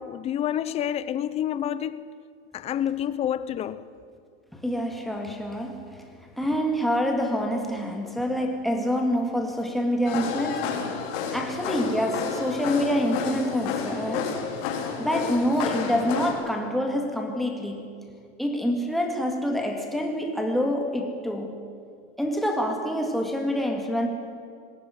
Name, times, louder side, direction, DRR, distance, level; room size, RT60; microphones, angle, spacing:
voice 1, 0.0-2.1 2.5-3.8, left 10 dB, 20° left, 0.5 m, -28 dB
voice 2, 4.5-6.1 6.4-10.9 11.3-14.5 15.0-17.9 18.4-21.6 22.2-24.1, equal, ahead, 2.0 m, -26 dB
sound 1, 10.0-16.3, left 6 dB, 60° left, 4.2 m, -31 dB
20.0 x 17.0 x 9.7 m
supercardioid pair, 160°, 32 cm